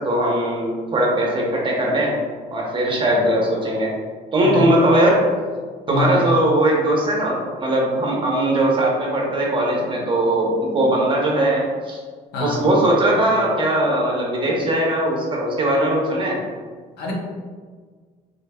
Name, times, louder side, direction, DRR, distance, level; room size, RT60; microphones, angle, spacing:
voice 1, 0.0-2.1 2.5-3.9 4.3-5.2 5.9-12.0 12.4-16.4, right 1 dB, 30° right, -2 dB, 0.9 m, -19 dB
voice 2, 5.9-6.2 12.3-12.6 17.0-17.1, left 3 dB, 75° left, -2 dB, 1.0 m, -25 dB
4.0 x 3.1 x 2.3 m, 1.5 s
cardioid pair, 110°, 17 cm